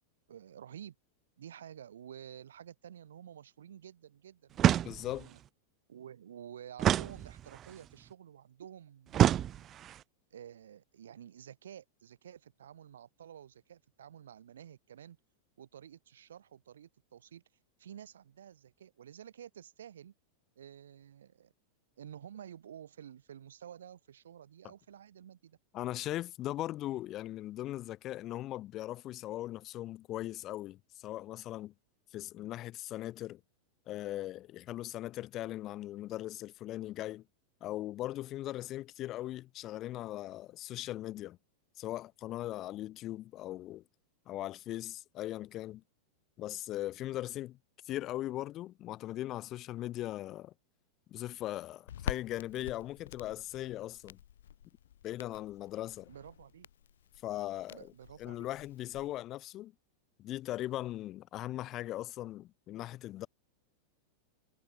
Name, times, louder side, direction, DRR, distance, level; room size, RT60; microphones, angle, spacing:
voice 1, 0.3-0.9 1.4-5.4 5.9-9.7 10.3-15.2 15.6-17.4 17.8-20.1 20.5-21.5 22.0-25.6 56.1-56.7 57.7-58.5, right 9 dB, 65° right, 6.6 m, -51 dB
sound 1, 4.6-5.3 6.8-7.8 9.1-10.0, right 11 dB, 30° right, 0.5 m, -28 dB
voice 2, 4.8-5.3 25.7-31.7 32.1-33.4 33.9-37.2 37.6-41.4 41.8-43.8 44.3-45.8 46.4-47.6 47.8-50.5 51.1-54.2 55.0-56.1 57.2-57.9 58.2-59.7 60.2-63.3, left 14 dB, 35° left, 1.9 m, -39 dB
Crackle, 51.9-59.2, left 10 dB, 60° left, 0.8 m, -46 dB
figure-of-eight pair, 90°, 0 cm